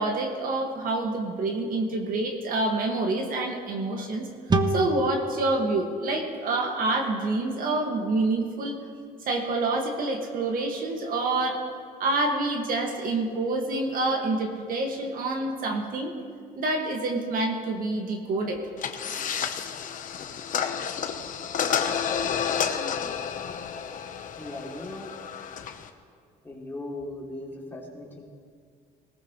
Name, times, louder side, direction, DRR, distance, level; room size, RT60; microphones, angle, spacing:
voice 1, 0.0-4.3 4.7-8.8 9.3-11.6 12.0-16.1 16.6-18.6, right 2 dB, 55° right, 2 dB, 2.1 m, -27 dB
sound 1, 4.5-7.9, right 1 dB, 25° right, 1.0 m, -30 dB
sound 2, 18.8-25.9, left 7 dB, 50° left, 1.1 m, -30 dB
voice 2, 24.4-25.1 26.4-28.2, left 1 dB, 10° left, -3 dB, 3.0 m, -38 dB
20.0 x 18.0 x 3.3 m, 2.2 s
cardioid pair, 110°, 17 cm